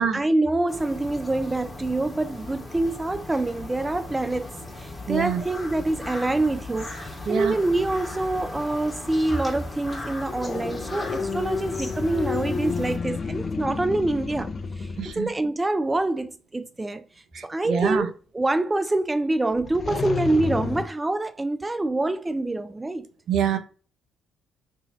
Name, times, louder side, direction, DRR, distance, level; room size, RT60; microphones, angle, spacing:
voice 1, 0.0-4.5 4.8-14.9 15.2-17.0 17.4-23.1, right 2 dB, 20° right, 0.4 m, -26 dB
sound 1, 0.7-13.0, left 2 dB, 20° left, 1.7 m, -38 dB
voice 2, 5.1-5.4 7.3-7.6 15.0-15.3 17.3-18.1 23.3-23.6, right 8 dB, 65° right, 0.6 m, -25 dB
sound 2, 6.2-6.6 10.3-15.3 19.5-20.9, left 5 dB, 40° left, 0.4 m, -31 dB
2.9 x 2.7 x 3.9 m
hypercardioid pair, 55°, 0 cm